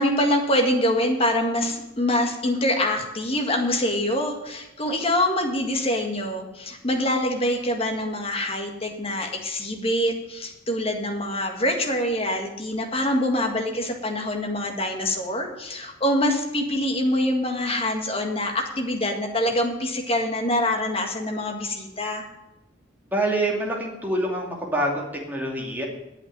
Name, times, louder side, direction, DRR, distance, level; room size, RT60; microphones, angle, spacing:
voice 1, 0.0-22.2, left 1 dB, 30° left, 2 dB, 1.9 m, -25 dB
voice 2, 23.1-25.8, right 1 dB, 10° right, -2 dB, 2.5 m, -26 dB
8.8 x 8.5 x 9.1 m, 0.93 s
head